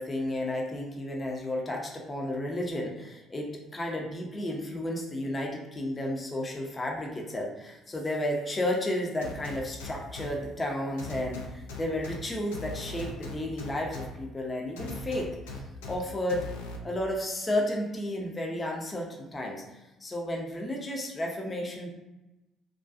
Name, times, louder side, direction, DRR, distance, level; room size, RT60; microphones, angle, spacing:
voice 1, 0.0-15.3 15.9-16.5 16.8-21.9, left 1 dB, 25° left, 0 dB, 0.5 m, -32 dB
sound 1, 9.2-10.3 11.0-12.2 12.5-14.1 14.8-15.9 16.3-16.8, left 3 dB, 80° left, 0.3 m, -39 dB
2.4 x 2.2 x 2.4 m, 1.0 s
hypercardioid pair, 55°, 0 cm